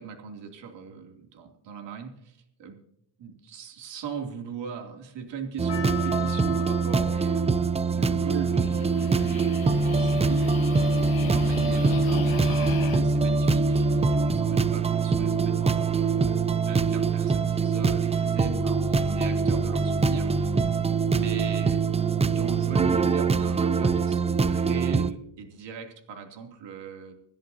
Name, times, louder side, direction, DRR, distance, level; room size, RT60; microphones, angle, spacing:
voice 1, 0.0-2.8 3.2-7.5 7.8-10.5 11.2-20.7 21.1-21.9 22.2-27.1, right 6 dB, 65° right, 3 dB, 3.0 m, -39 dB
sound 1, 5.6-25.1, right 4 dB, 15° right, 0.5 m, -24 dB
Percussion, 5.7-10.6, left 11 dB, 25° left, 3.7 m, -42 dB
sound 2, 8.3-13.0, left 7 dB, 50° left, 1.7 m, -38 dB
26.0 x 10.5 x 2.8 m, 0.76 s
cardioid pair, 125°, 47 cm